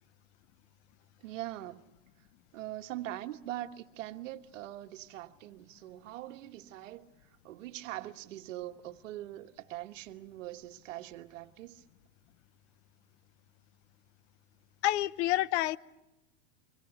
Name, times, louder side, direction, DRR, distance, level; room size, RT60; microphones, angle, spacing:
voice 1, 1.2-1.8 2.5-7.1 7.4-11.8, right 14 dB, 75° right, 1.4 m, -42 dB
voice 2, 14.8-15.8, left 15 dB, 55° left, 0.8 m, -28 dB
25.0 x 24.0 x 6.9 m
supercardioid pair, 140°, 39 cm